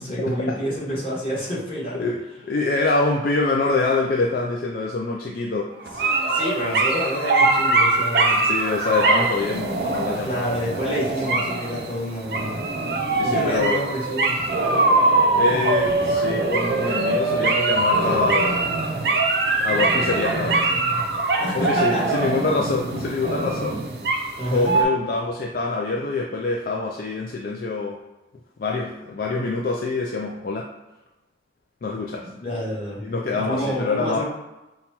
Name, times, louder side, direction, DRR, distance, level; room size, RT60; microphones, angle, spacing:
voice 1, 0.0-2.1 6.0-8.4 10.2-12.6 13.2-14.4 21.4-22.1 24.4-24.7 32.2-33.0 33.3-34.2, equal, 30° left, -7 dB, 1.5 m, -28 dB
voice 2, 2.0-5.7 8.5-11.1 13.2-13.9 15.4-18.7 19.6-20.7 21.5-23.8 24.5-28.0 28.6-30.7 31.8-32.3 33.0-34.2, left 3 dB, 55° left, -1 dB, 0.4 m, -25 dB
sound 1, 5.8-24.8, right 2 dB, 65° right, 0.5 m, -22 dB
5.4 x 2.2 x 2.9 m, 1.0 s
head